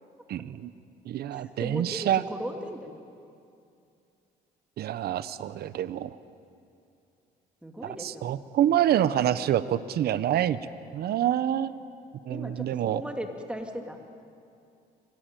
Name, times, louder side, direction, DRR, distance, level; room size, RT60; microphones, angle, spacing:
voice 1, 0.3-0.7 1.0-2.2 4.8-6.2 7.8-11.7 12.3-13.0, right 11 dB, 70° right, 14 dB, 0.9 m, -27 dB
voice 2, 1.3-3.0 7.6-8.4 12.3-14.0, equal, 5° right, 3 dB, 2.8 m, -37 dB
25.0 x 18.0 x 9.2 m, 2.5 s
cardioid pair, 90°, 17 cm